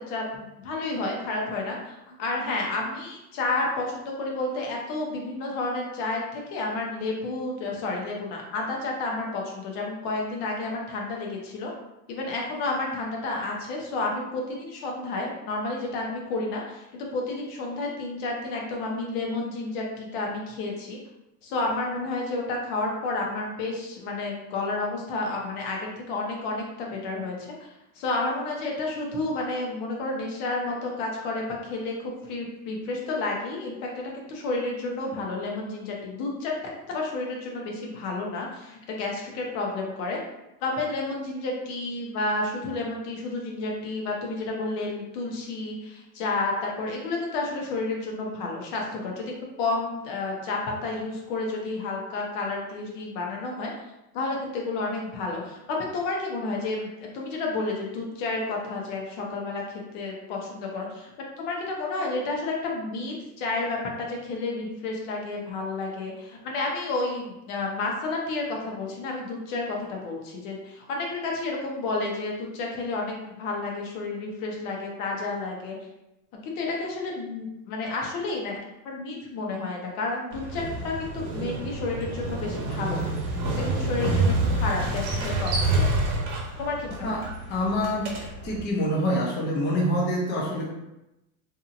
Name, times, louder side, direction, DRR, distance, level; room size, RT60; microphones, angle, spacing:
voice 1, 0.1-11.7 12.1-21.0 21.4-27.5 28.0-36.6 36.9-40.2 40.6-53.7 54.1-61.1 61.4-75.8 76.4-78.6 78.8-85.9 86.6-87.3, left 3 dB, 65° left, -1 dB, 0.9 m, -31 dB
Motorcycle, 80.3-88.7, right 2 dB, 60° right, 1.0 m, -28 dB
voice 2, 87.5-88.1 88.4-90.7, equal, 25° left, -3 dB, 0.6 m, -26 dB
2.8 x 2.6 x 2.4 m, 0.92 s
supercardioid pair, 115°, 44 cm